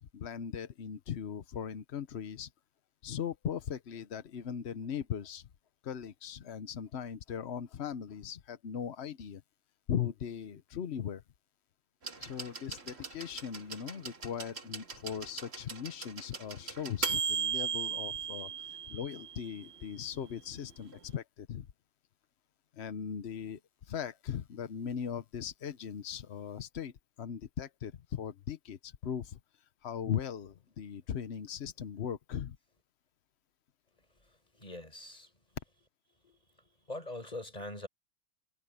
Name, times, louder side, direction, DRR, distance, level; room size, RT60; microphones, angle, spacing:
voice 1, 0.1-2.5 3.0-5.5 5.8-9.4 9.9-11.2 12.2-21.7 22.7-29.4 29.8-32.6, left 8 dB, 75° left, 0.6 m, -39 dB
sound 1, 12.0-19.8 20.9-21.0, right 6 dB, 30° right, 2.0 m, -37 dB
voice 2, 34.2-35.3 36.2-37.9, left 2 dB, 15° left, 6.2 m, -44 dB
omnidirectional pair, 2.3 m